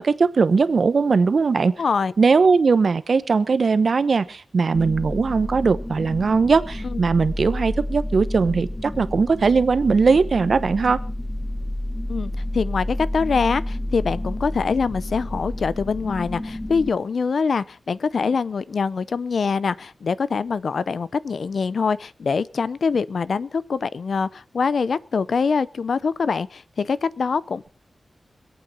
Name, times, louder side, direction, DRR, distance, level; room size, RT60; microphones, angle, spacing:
voice 1, 0.0-1.7 2.2-11.0, right 4 dB, 65° right, 1.0 m, -19 dB
voice 2, 1.8-2.1 6.8-7.0 12.1-27.6, left 5 dB, 75° left, 0.6 m, -24 dB
sound 1, 4.7-16.9, left 1 dB, 15° left, 1.0 m, -30 dB
25.5 x 8.7 x 4.1 m
wide cardioid pair, 110°, 0 cm